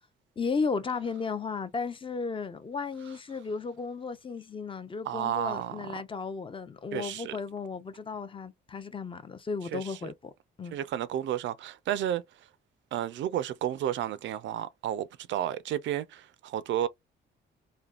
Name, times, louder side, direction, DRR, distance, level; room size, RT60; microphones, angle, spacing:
voice 1, 0.4-10.3 10.6-10.8, left 5 dB, 25° left, 0.5 m, -34 dB
voice 2, 5.1-6.0 6.9-7.3 9.7-10.1 10.7-12.2 12.9-16.9, right 11 dB, 70° right, 0.4 m, -32 dB
3.3 x 2.2 x 2.4 m
cardioid pair, 90°, 20 cm